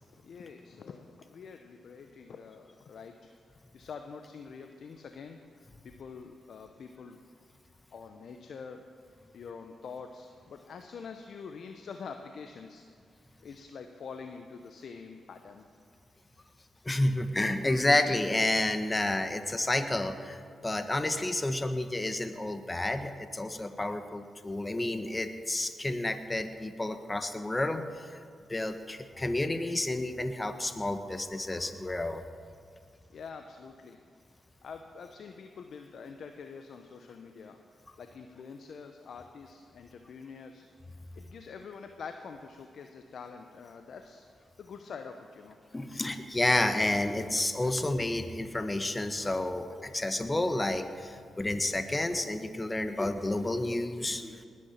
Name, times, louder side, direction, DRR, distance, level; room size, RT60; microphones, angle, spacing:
voice 1, 0.1-5.4 5.8-7.2 7.9-12.8 13.2-15.7 33.1-34.0 34.6-37.6 38.0-45.6, left 5 dB, 65° left, 6 dB, 0.9 m, -46 dB
voice 2, 16.8-28.2 28.5-32.2 45.7-54.4, left 1 dB, 20° left, 9 dB, 1.3 m, -30 dB
19.5 x 9.8 x 5.9 m, 2.2 s
supercardioid pair, 45°, 0 cm